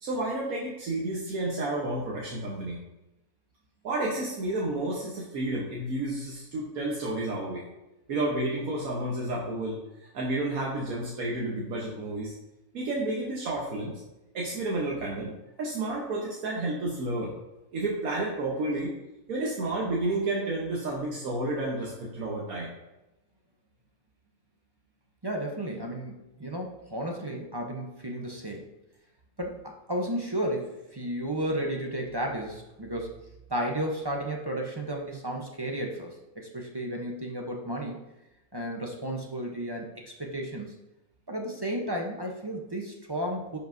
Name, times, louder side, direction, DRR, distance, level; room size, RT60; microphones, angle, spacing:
voice 1, 0.0-2.8 3.8-7.7 8.1-12.3 12.7-14.0 14.3-17.3 17.7-18.9 19.3-22.7, right 2 dB, 80° right, -3 dB, 1.5 m, -31 dB
voice 2, 25.2-28.7 29.4-33.2 33.5-38.0 38.5-40.8 41.3-43.6, right 1 dB, 25° right, 0 dB, 0.6 m, -33 dB
10.5 x 5.4 x 2.6 m, 0.96 s
omnidirectional pair, 1.5 m